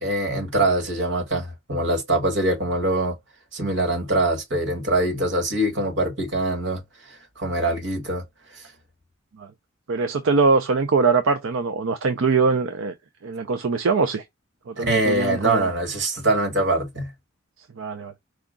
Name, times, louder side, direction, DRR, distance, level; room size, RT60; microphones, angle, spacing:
voice 1, 0.0-3.1 3.5-8.2 8.5-8.7 14.8-17.1, right 1 dB, 65° right, 1.6 m, -23 dB
voice 2, 9.9-12.9 13.2-14.2 14.7-15.7 17.8-18.1, right 4 dB, 85° right, 0.5 m, -22 dB
4.8 x 2.3 x 3.6 m
head